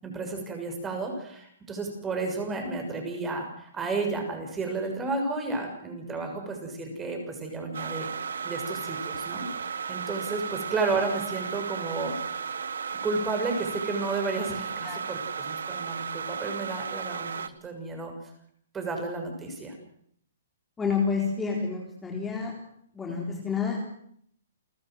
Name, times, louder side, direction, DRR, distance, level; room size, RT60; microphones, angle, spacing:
voice 1, 0.0-8.1 8.4-12.1 13.0-18.1 18.7-19.7 23.1-23.4, right 3 dB, 15° right, 3 dB, 6.6 m, -32 dB
sound 1, 7.7-17.5, right 6 dB, 80° right, 1.4 m, -34 dB
voice 2, 20.8-22.5 22.9-23.8, left 5 dB, 10° left, -1 dB, 4.1 m, -29 dB
29.5 x 14.0 x 7.9 m, 0.68 s
hypercardioid pair, 145°, 0 cm